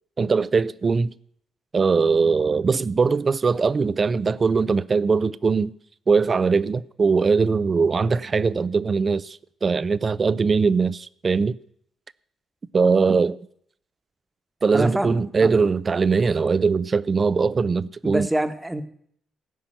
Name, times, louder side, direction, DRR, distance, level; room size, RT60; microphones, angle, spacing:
voice 1, 0.2-1.1 1.7-5.7 6.1-11.6 12.7-13.4 14.6-18.3, right 4 dB, 35° right, 0.5 m, -21 dB
voice 2, 14.7-15.6 18.0-18.8, right 1 dB, 10° right, 1.2 m, -26 dB
15.5 x 5.8 x 9.0 m
cardioid pair, 90°, 0 cm